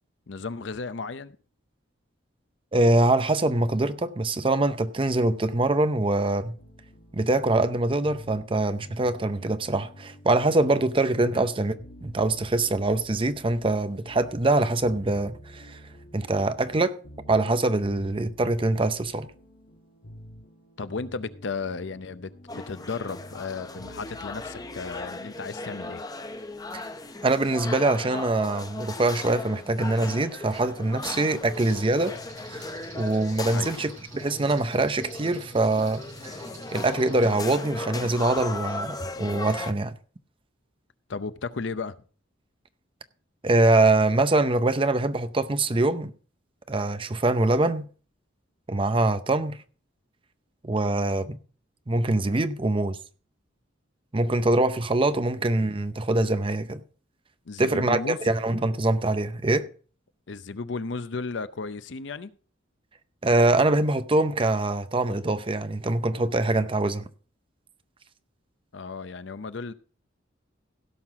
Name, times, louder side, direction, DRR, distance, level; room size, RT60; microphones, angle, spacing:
voice 1, 0.3-1.4 11.3-11.5 20.8-26.0 33.5-33.7 41.1-42.0 57.5-58.2 60.3-62.3 68.7-69.7, left 4 dB, 65° left, 0.6 m, -34 dB
voice 2, 2.7-6.6 7.1-11.7 12.0-15.8 16.1-17.0 17.3-19.3 26.7-26.8 27.2-32.2 32.5-36.4 36.7-39.9 43.4-46.1 46.7-47.9 48.7-49.6 50.6-51.4 51.9-53.0 54.1-56.8 57.6-59.7 63.2-67.0, right 2 dB, 25° right, 0.6 m, -24 dB
sound 1, 6.6-25.1, equal, 80° left, 1.8 m, -49 dB
sound 2, 22.5-39.7, left 3 dB, 20° left, 0.7 m, -37 dB
sound 3, 31.5-37.3, right 2 dB, 45° right, 4.6 m, -46 dB
16.5 x 5.9 x 4.7 m
head